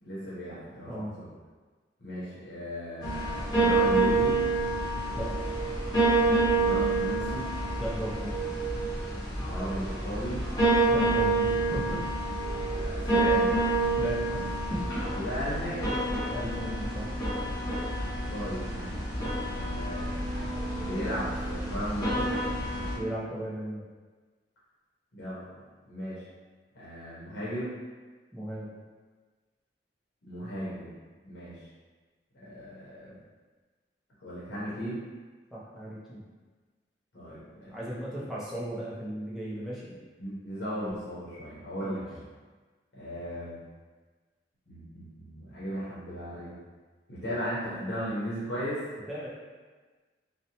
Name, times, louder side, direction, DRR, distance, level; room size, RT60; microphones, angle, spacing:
voice 1, 0.0-1.2 2.0-4.4 6.5-7.5 9.3-10.5 12.6-13.6 15.1-16.0 18.3-18.9 19.5-20.3 20.7-22.4 25.1-25.5 25.9-26.2 26.7-27.8 30.2-30.9 31.2-31.6 32.3-33.2 34.2-35.0 37.1-37.7 40.2-42.2 42.9-43.6 44.7-46.5 47.1-48.8, equal, 65° left, -9 dB, 0.7 m, -36 dB
sound 1, 3.0-23.0, right 2 dB, 20° left, 0.8 m, -28 dB
voice 2, 7.8-8.4 10.9-12.0 13.9-14.4 14.7-15.1 16.3-17.1 22.9-23.8 28.3-28.8 35.5-36.3 37.7-39.9 41.8-42.0 49.1-49.3, equal, ahead, -8 dB, 0.5 m, -36 dB
2.7 x 2.1 x 2.8 m, 1.4 s
head